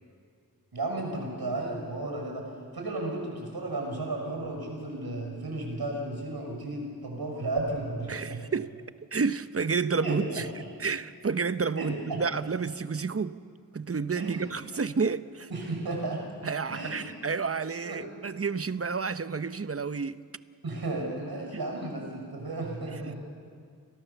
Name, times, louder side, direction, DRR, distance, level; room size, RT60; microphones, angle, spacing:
voice 1, 0.7-8.4 10.0-10.6 11.8-12.2 14.1-14.5 15.5-16.2 16.7-17.1 17.8-18.1 20.6-23.2, right 2 dB, 85° right, 6.2 m, -34 dB
voice 2, 8.1-8.7 9.1-10.5 10.8-13.4 13.7-15.5 16.4-20.2, right 5 dB, 40° right, 0.8 m, -30 dB
29.5 x 23.5 x 7.1 m
wide cardioid pair, 65°, 36 cm